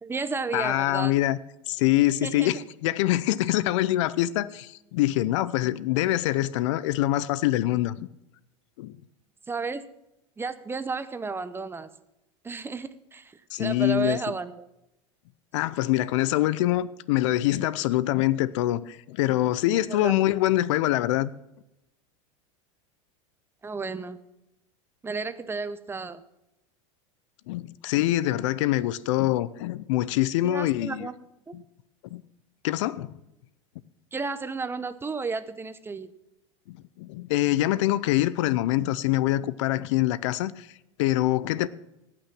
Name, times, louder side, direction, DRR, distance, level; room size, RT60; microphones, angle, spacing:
voice 1, 0.0-1.1 2.2-2.5 9.5-9.8 10.4-11.9 12.4-14.7 19.9-20.1 23.6-24.2 25.0-26.2 30.4-31.1 31.5-31.6 34.1-36.1, right 4 dB, 15° right, 0.7 m, -32 dB
voice 2, 0.5-1.4 1.7-8.1 8.8-9.0 13.5-14.2 15.5-21.3 27.5-31.1 31.5-31.6 32.1-32.2 32.6-33.2 36.7-40.7 41.0-41.7, left 15 dB, 70° left, 0.7 m, -25 dB
18.0 x 6.1 x 6.1 m
hypercardioid pair, 110°, 16 cm